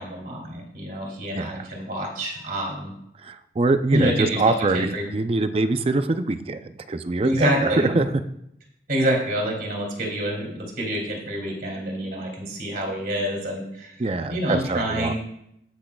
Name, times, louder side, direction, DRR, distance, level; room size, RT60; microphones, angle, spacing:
voice 1, 0.0-2.9 3.9-5.1 7.2-8.0 8.9-13.9 14.3-15.1, equal, 55° right, 0 dB, 2.6 m, -27 dB
voice 2, 1.3-1.7 3.2-8.1 14.0-15.1, right 2 dB, 35° right, 10 dB, 0.4 m, -24 dB
17.5 x 6.2 x 2.3 m, 0.78 s
head